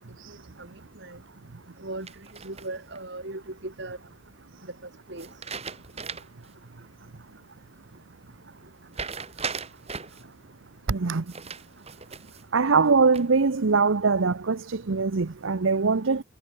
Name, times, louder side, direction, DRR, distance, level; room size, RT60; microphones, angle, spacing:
sound 1, 2.1-3.0 5.2-6.5 6.8-6.9 8.9-10.2 11.3-12.5 12.9-13.5, right 5 dB, 30° right, 4.4 m, -37 dB
voice 1, 2.4-4.0 5.1-5.3, right 2 dB, 55° right, 2.7 m, -37 dB
voice 2, 10.9-11.2 12.5-16.2, right 4 dB, 75° right, 0.8 m, -22 dB
head